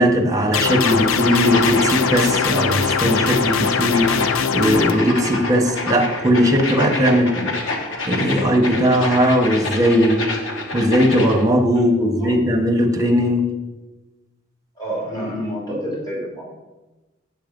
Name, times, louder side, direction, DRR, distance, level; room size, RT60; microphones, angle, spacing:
voice 1, 0.0-7.5 8.1-10.2 10.7-13.5, equal, 15° right, 3 dB, 1.2 m, -18 dB
sound 1, 0.5-4.9, left 6 dB, 85° left, 0.5 m, -21 dB
sound 2, 0.7-11.4, left 2 dB, 70° left, 1.4 m, -27 dB
voice 2, 11.7-12.4 14.7-16.4, equal, 20° left, -5 dB, 3.3 m, -29 dB
8.6 x 6.5 x 5.3 m, 1.1 s
head